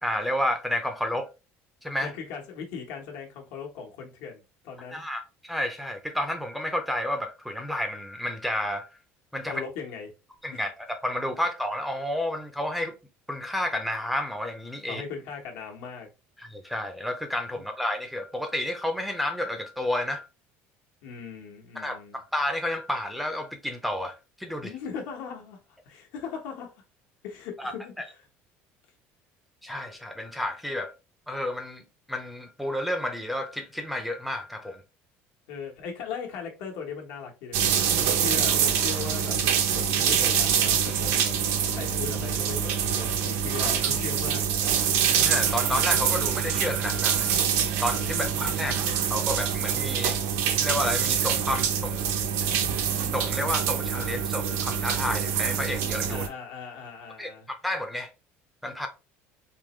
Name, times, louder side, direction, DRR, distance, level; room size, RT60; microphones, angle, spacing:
voice 1, 0.0-1.3 1.8-2.1 4.9-8.9 9.3-9.6 10.4-12.9 13.3-15.0 16.4-20.3 21.8-24.7 27.6-27.7 29.6-30.9 31.3-31.8 32.1-34.8 45.1-47.4 47.8-50.2 50.6-52.0 53.1-56.2 57.2-58.1 58.6-58.9, left 1 dB, ahead, 0.5 m, -31 dB
voice 2, 2.0-5.1 9.4-10.1 10.5-10.6 14.9-16.1 17.5-17.6 21.0-22.2 24.6-25.6 25.8-26.8 27.2-28.2 35.5-39.4 39.7-41.3 41.8-44.4 48.1-48.9 56.1-57.5, left 6 dB, 75° left, 1.2 m, -39 dB
sound 1, 37.5-56.3, right 8 dB, 75° right, 0.7 m, -25 dB
3.7 x 3.0 x 3.0 m
cardioid pair, 160°, 5 cm